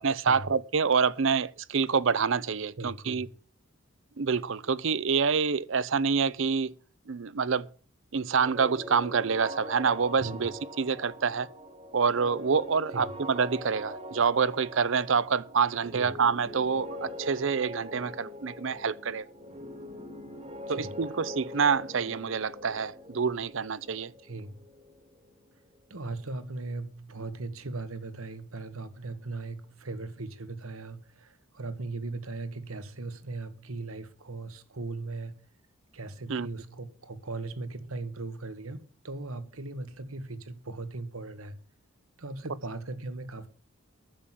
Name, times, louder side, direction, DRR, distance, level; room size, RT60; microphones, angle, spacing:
voice 1, 0.0-3.3 4.2-6.7 7.1-7.7 8.1-11.5 11.9-19.3 20.7-24.1 36.3-36.5, right 5 dB, 60° right, 0.6 m, -27 dB
voice 2, 2.8-3.3 10.2-10.4 12.9-13.0 15.9-16.1 20.7-20.9 24.2-24.5 25.9-35.4 35.9-41.6 42.2-43.5, right 3 dB, 75° right, 1.4 m, -38 dB
sound 1, 8.3-26.0, left 1 dB, 25° right, 1.4 m, -42 dB
10.5 x 7.6 x 7.4 m
head